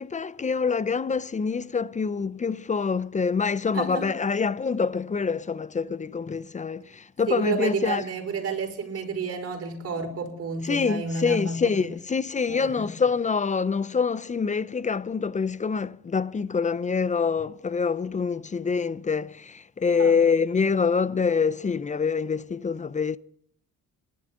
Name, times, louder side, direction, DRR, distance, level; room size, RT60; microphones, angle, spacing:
voice 1, 0.0-8.0 10.6-23.2, left 5 dB, 25° left, 0.5 m, -26 dB
voice 2, 7.3-11.9 12.5-12.9 20.0-20.2, right 5 dB, 50° right, 5.5 m, -30 dB
28.5 x 12.0 x 3.8 m
cardioid pair, 90°, 30 cm